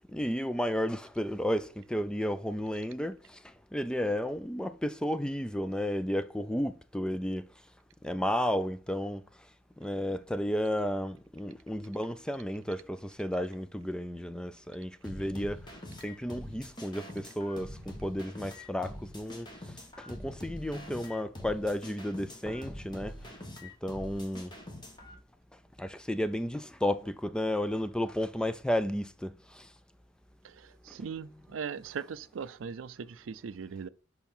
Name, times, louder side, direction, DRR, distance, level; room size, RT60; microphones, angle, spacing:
voice 1, 0.1-7.5 8.0-9.2 9.8-15.6 16.0-23.1 23.6-24.5 25.8-29.7 31.3-31.4, equal, 5° left, 0.4 m, -33 dB
sound 1, 15.0-25.1, left 1 dB, 25° left, 1.3 m, -44 dB
voice 2, 30.9-33.9, right 6 dB, 90° right, 0.4 m, -39 dB
5.7 x 4.4 x 5.4 m
head